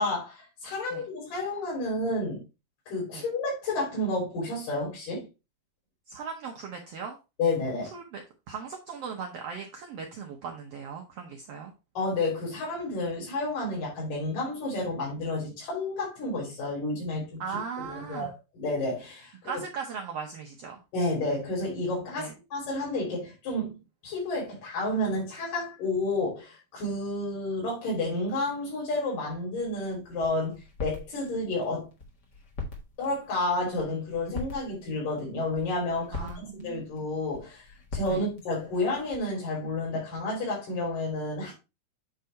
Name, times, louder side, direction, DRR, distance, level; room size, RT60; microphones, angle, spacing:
voice 1, 0.0-2.4 2.9-5.3 7.4-7.9 11.9-17.4 17.8-18.3 18.5-19.5 20.9-23.8 24.0-31.9 33.0-41.5, left 2 dB, 70° left, 4.6 m, -30 dB
voice 2, 6.1-7.2 7.8-11.7 17.4-18.3 19.4-20.8 22.1-22.3 36.1-36.9 38.1-38.3, right 6 dB, 80° right, 1.4 m, -38 dB
sound 1, 29.6-39.3, left 3 dB, 40° left, 1.7 m, -43 dB
8.2 x 3.7 x 4.4 m
omnidirectional pair, 4.0 m